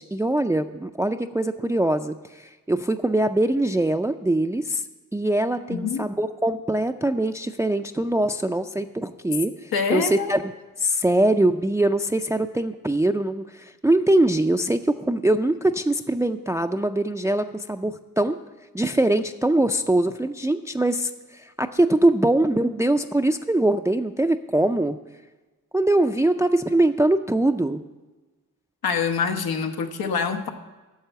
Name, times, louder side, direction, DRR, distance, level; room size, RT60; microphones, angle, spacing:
voice 1, 0.0-4.8 5.1-10.4 10.8-18.4 18.7-25.0 25.7-27.8, right 1 dB, 10° right, 6 dB, 0.4 m, -22 dB
voice 2, 5.7-6.1 9.7-10.3 28.8-30.5, left 5 dB, 85° left, 6 dB, 1.0 m, -25 dB
10.5 x 6.6 x 7.9 m, 1.2 s
cardioid pair, 60°, 36 cm